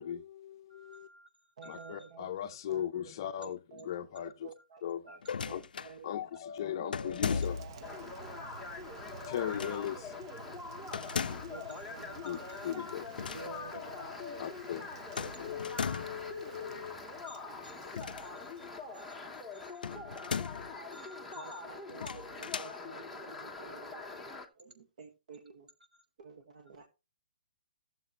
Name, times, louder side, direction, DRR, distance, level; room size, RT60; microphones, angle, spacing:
voice 1, 0.0-1.1 1.7-4.5 4.8-5.0 5.5-5.6 6.0-8.0 9.3-10.0 11.3-11.4 12.2-12.4 12.6-13.1 13.4-14.9 15.4-17.0, left 10 dB, 30° left, 0.6 m, -39 dB
voice 2, 0.7-2.1 4.6-4.7 5.1-5.3 8.9-9.8 11.5-12.8 17.2-17.9 18.2-20.4 20.9-21.7 22.0-22.2 25.9-26.0, equal, 65° right, 3.4 m, -54 dB
voice 3, 1.6-3.1 3.4-5.2 5.5-6.2 7.0-7.9 9.1-10.0 11.5-12.2 13.3-14.1 15.2-16.0 21.3-24.2 24.6-25.7 26.2-26.8, right 5 dB, 50° right, 1.5 m, -51 dB
sound 1, 5.2-5.9 6.9-7.8 9.5-9.9 10.9-11.6 13.0-13.5 13.7-13.9 15.2-16.3 17.9-18.7 19.8-20.7 21.9-22.8, left 6 dB, 85° left, 0.4 m, -37 dB
Rain, 7.2-19.7, right 6 dB, 30° right, 0.7 m, -53 dB
sound 2, 7.8-24.5, left 4 dB, ahead, 0.9 m, -44 dB
15.5 x 7.3 x 2.9 m
hypercardioid pair, 170°, 5 cm